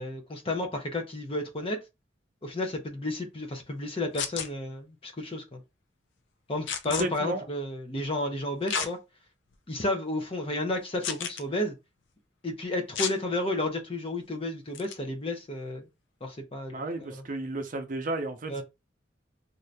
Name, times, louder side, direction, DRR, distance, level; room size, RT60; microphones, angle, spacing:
voice 1, 0.0-1.8 2.4-5.6 6.5-9.0 9.7-11.7 12.4-15.9 16.2-17.2 18.5-18.6, left 1 dB, 30° left, 0.7 m, -32 dB
sound 1, 4.1-4.5 6.7-7.0 8.7-8.9 9.5-9.6 11.0-11.4 12.9-13.2 14.7-14.9, left 7 dB, 85° left, 0.5 m, -31 dB
voice 2, 6.9-7.5 16.7-18.6, right 2 dB, 45° right, 0.6 m, -33 dB
2.8 x 2.5 x 3.3 m
head